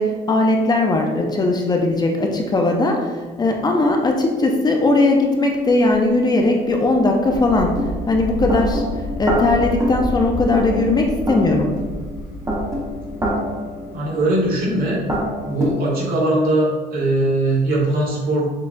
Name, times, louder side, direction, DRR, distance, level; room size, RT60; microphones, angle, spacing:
voice 1, 0.0-7.8 8.1-8.8 9.2-11.7, left 2 dB, 25° left, 2 dB, 0.4 m, -18 dB
sound 1, 5.9-6.0 6.7-15.7, equal, 20° right, 1.1 m, -26 dB
voice 2, 13.8-15.0 15.4-18.5, right 1 dB, 60° right, -4 dB, 1.3 m, -20 dB
6.3 x 2.3 x 2.5 m, 1.3 s
cardioid pair, 110°, 17 cm